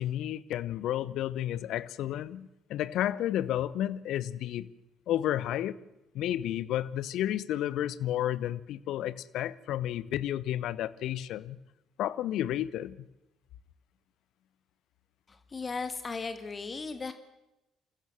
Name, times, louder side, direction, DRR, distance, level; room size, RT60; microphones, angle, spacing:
voice 1, 0.0-4.7 5.1-5.8 6.1-11.6 12.0-13.1, left 12 dB, 60° left, 0.8 m, -31 dB
voice 2, 15.3-17.1, left 4 dB, 30° left, 1.9 m, -36 dB
27.5 x 15.0 x 7.5 m
figure-of-eight pair, 45°, 0 cm